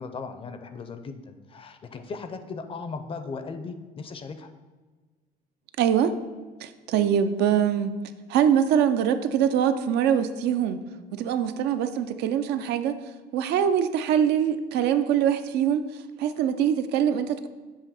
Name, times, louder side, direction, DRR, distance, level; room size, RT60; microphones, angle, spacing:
voice 1, 0.0-4.5, left 4 dB, 35° left, 8 dB, 0.5 m, -37 dB
voice 2, 5.8-6.1 6.6-8.0 8.3-10.8 11.1-13.0 13.3-17.5, right 9 dB, 80° right, 9 dB, 0.5 m, -23 dB
7.3 x 2.7 x 5.5 m, 1.3 s
cardioid pair, 110°, 17 cm